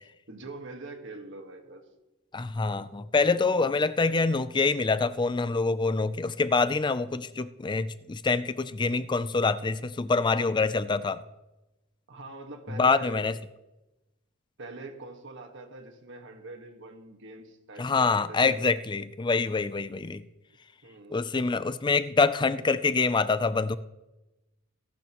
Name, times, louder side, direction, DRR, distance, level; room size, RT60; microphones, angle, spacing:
voice 1, 0.3-1.8 3.5-3.8 12.1-13.3 14.6-18.7 20.8-21.4, right 2 dB, 65° right, 5 dB, 1.6 m, -44 dB
voice 2, 2.3-11.2 12.8-13.4 17.8-20.2 21.1-23.8, left 4 dB, 20° left, 14 dB, 0.4 m, -25 dB
17.0 x 12.0 x 3.0 m, 1.0 s
head